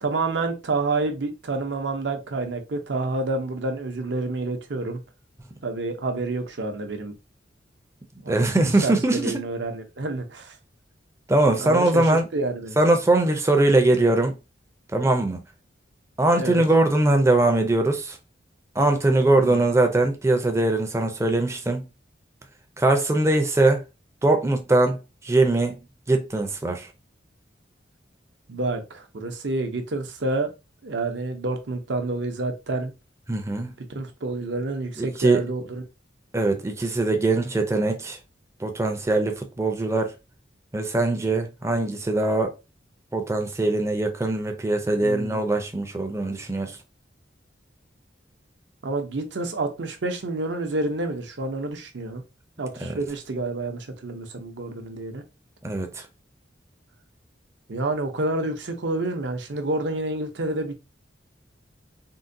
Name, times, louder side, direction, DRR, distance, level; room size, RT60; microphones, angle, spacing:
voice 1, 0.0-5.0 5.6-7.1 8.2-10.6 11.6-12.8 16.4-16.6 19.3-19.6 28.5-30.5 30.8-32.9 33.9-35.9 45.0-45.5 48.8-52.2 52.6-55.2 57.7-60.7, right 2 dB, 70° right, 0.7 m, -28 dB
voice 2, 8.3-9.4 11.3-12.2 12.8-14.4 14.9-15.4 16.2-18.2 18.8-21.9 22.8-23.8 24.2-25.8 26.1-26.9 33.3-33.7 35.0-35.4 36.3-38.2 38.6-40.1 40.7-42.5 43.1-46.8 52.8-53.0 55.6-56.1, right 2 dB, 15° right, 0.5 m, -21 dB
3.7 x 2.2 x 2.6 m
head